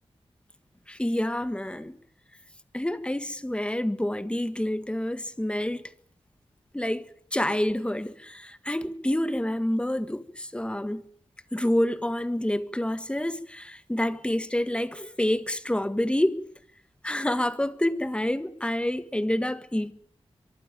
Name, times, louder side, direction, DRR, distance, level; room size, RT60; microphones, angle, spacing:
voice 1, 0.9-2.0 2.7-5.8 6.7-7.0 7.3-11.0 11.5-16.4 17.0-19.9, left 1 dB, 10° left, 1.7 m, -28 dB
23.5 x 15.0 x 9.3 m
wide cardioid pair, 90°, 10 cm